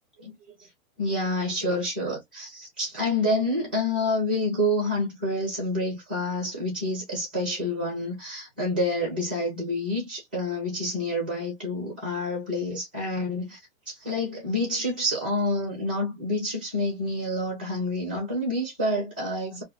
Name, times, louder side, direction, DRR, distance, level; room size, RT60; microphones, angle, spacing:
voice 1, 1.0-13.6 13.9-19.6, left 1 dB, 5° right, 0.4 m, -28 dB
2.5 x 2.4 x 2.9 m
hypercardioid pair, 170°, 40 cm